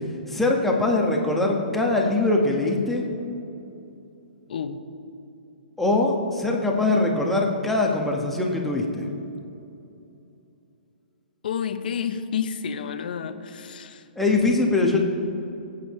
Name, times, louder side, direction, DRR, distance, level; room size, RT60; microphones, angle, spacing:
voice 1, 0.3-3.0 5.8-9.1 14.2-15.0, left 2 dB, 5° left, -1 dB, 1.4 m, -22 dB
voice 2, 11.4-14.0, left 7 dB, 65° left, 9 dB, 0.9 m, -30 dB
23.5 x 8.5 x 3.2 m, 2.8 s
hypercardioid pair, 135°, 5 cm